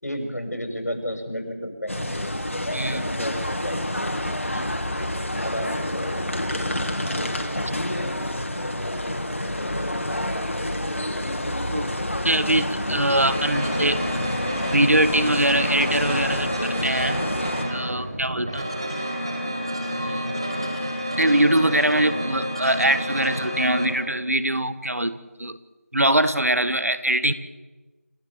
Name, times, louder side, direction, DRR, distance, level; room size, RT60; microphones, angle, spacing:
voice 1, 0.0-2.4 2.9-4.2 5.4-6.1 6.5-6.6, equal, 85° left, 4 dB, 6.4 m, -32 dB
sound 1, 1.9-17.6, left 1 dB, 55° left, 2.7 m, -28 dB
voice 2, 2.7-3.1 4.5-4.7 7.1-7.4 11.7-11.9 12.2-14.0 14.7-17.2 17.7-18.9 19.9-20.4 21.2-25.6 25.9-27.3, right 1 dB, 70° right, 13 dB, 1.6 m, -23 dB
sound 2, 13.1-23.9, equal, 20° right, 1.9 m, -29 dB
28.5 x 13.5 x 7.4 m, 1.2 s
figure-of-eight pair, 180°, 8 cm